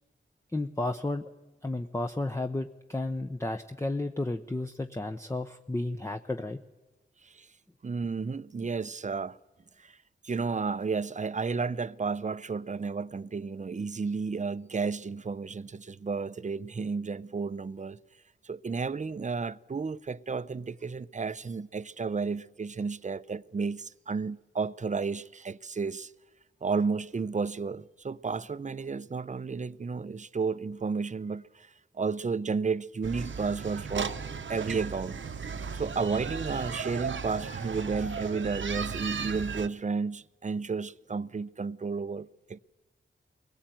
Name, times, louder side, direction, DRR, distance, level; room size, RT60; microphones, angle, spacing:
voice 1, 0.5-1.2 1.6-6.6, left 2 dB, 15° left, 0.8 m, -32 dB
voice 2, 7.8-9.4 9.8-10.0 10.2-18.0 18.4-26.1 26.6-31.7 31.9-34.1 34.5-35.2 35.7-42.6, right 4 dB, 35° right, 0.6 m, -32 dB
sound 1, 33.0-39.7, right 5 dB, 70° right, 1.0 m, -36 dB
22.5 x 17.5 x 9.1 m
cardioid pair, 70°, 21 cm